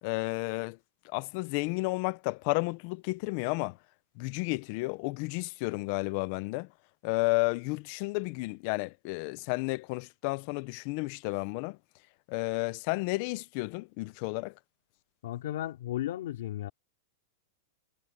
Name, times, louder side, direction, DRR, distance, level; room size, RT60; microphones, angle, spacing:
voice 1, 0.0-0.8 1.0-3.8 4.2-6.7 7.0-11.8 12.3-14.5, left 25 dB, 35° left, 0.5 m, -32 dB
voice 2, 15.2-16.7, left 13 dB, 65° left, 2.7 m, -34 dB
supercardioid pair, 175°, 0 cm